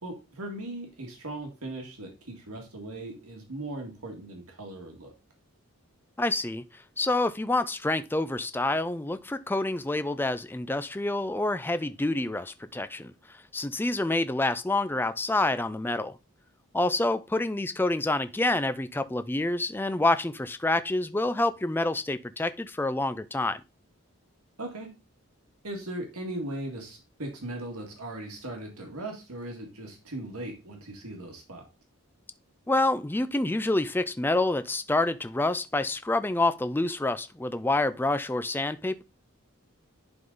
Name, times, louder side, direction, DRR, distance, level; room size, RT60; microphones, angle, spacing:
voice 1, 0.0-5.1 24.6-24.9 25.6-31.6, right 1 dB, 90° right, 1.9 m, -38 dB
voice 2, 6.2-16.2 16.7-23.6 32.7-39.0, left 2 dB, 10° left, 0.3 m, -27 dB
10.5 x 3.8 x 3.9 m
head